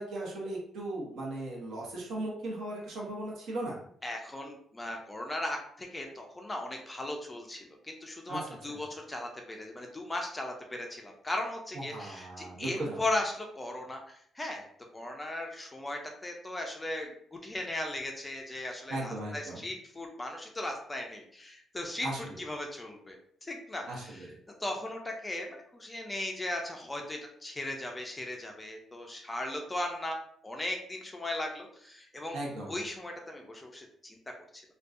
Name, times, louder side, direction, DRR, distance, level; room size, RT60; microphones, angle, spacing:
voice 1, 0.0-3.8 8.3-8.4 8.7-8.8 11.9-13.1 18.9-19.7 22.0-22.4 23.9-24.3 32.3-32.8, right 1 dB, 70° right, -3 dB, 0.9 m, -37 dB
voice 2, 4.0-14.7 14.9-23.2 23.4-24.2 24.6-30.2 30.4-32.4 32.7-34.6, left 1 dB, 10° left, 2 dB, 0.3 m, -37 dB
2.5 x 2.2 x 2.4 m, 0.64 s
cardioid pair, 160°, 0 cm